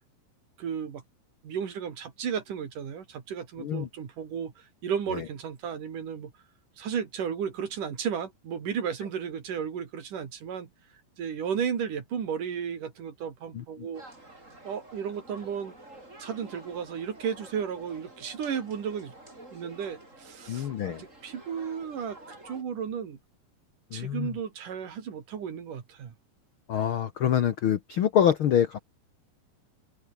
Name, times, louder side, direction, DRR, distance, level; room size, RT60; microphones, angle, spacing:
voice 1, 0.6-1.0 1.4-6.3 6.8-10.7 11.2-14.0 14.6-15.7 16.2-19.1 19.5-22.2 22.5-23.2 23.9-26.1, right 7 dB, 65° right, 4.3 m, -34 dB
voice 2, 13.5-13.9 20.5-21.0 23.9-24.3 26.7-28.8, left 9 dB, 85° left, 1.1 m, -26 dB
sound 1, 13.9-22.6, right 1 dB, 20° right, 7.4 m, -49 dB
omnidirectional pair, 4.1 m